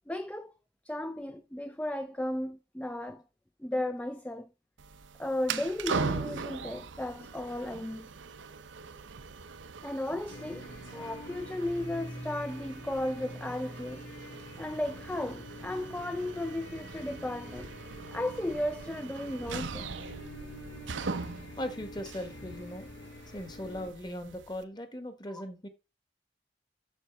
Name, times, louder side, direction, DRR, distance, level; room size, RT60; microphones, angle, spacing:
voice 1, 0.1-0.5 0.8-3.2 3.6-4.5 5.2-8.1 9.8-10.6 10.9-14.0 14.6-17.7 18.1-19.9 25.3-25.4, left 1 dB, 5° left, 0.4 m, -35 dB
sound 1, 4.8-24.6, right 4 dB, 85° right, 0.7 m, -41 dB
sound 2, 10.3-23.9, left 1 dB, 85° left, 3.5 m, -46 dB
voice 2, 21.6-22.9 23.3-25.7, left 1 dB, 20° left, 1.3 m, -39 dB
7.2 x 6.7 x 4.3 m
head